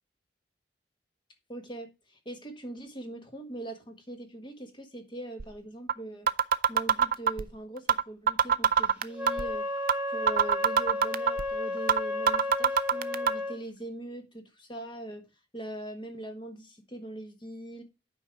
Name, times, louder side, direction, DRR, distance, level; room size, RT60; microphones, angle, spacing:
voice 1, 1.5-6.3 6.7-9.7 10.1-15.2 15.5-17.8, right 1 dB, 25° left, 1.4 m, -41 dB
sound 1, 5.4-5.5 5.9-6.0 6.3-7.4 7.9-8.0 8.3-9.4 9.9-10.0 10.3-11.4 11.9-12.0 12.3-13.3, right 7 dB, 50° right, 0.5 m, -22 dB
Wind instrument woodwind instrument, 9.1-13.6, left 2 dB, 10° right, 1.6 m, -32 dB
8.5 x 5.3 x 4.5 m
head